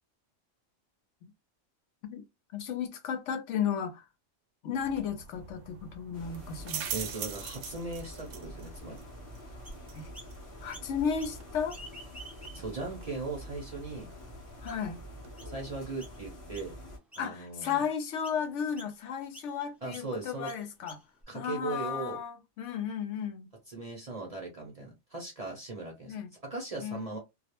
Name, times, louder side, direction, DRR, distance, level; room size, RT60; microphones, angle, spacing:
voice 1, 2.5-4.0 4.6-6.9 9.9-10.1 10.6-11.8 14.6-15.0 17.2-21.0 21.3-23.5 26.0-26.3 26.8-27.2, left 7 dB, 80° left, 0.9 m, -34 dB
sound 1, 4.7-15.3, right 7 dB, 75° right, 0.9 m, -44 dB
sound 2, 6.1-17.0, left 1 dB, 30° left, 0.7 m, -47 dB
voice 2, 6.9-9.0 12.5-14.1 15.4-16.8 17.1-17.8 19.8-20.5 21.3-22.2 23.7-27.2, right 3 dB, 40° right, 0.6 m, -39 dB
Chirp tweet, 9.7-10.3 10.7-11.4 11.7-12.9 13.4-13.5 14.2-14.3 14.7-15.0 15.4-15.6 16.0-16.2 16.5-16.9 17.1-17.8 18.2-18.4 18.8-18.9 19.3-19.5 19.9-20.1 20.5-21.2, equal, ahead, 0.3 m, -50 dB
2.3 x 2.0 x 2.9 m
omnidirectional pair, 1.2 m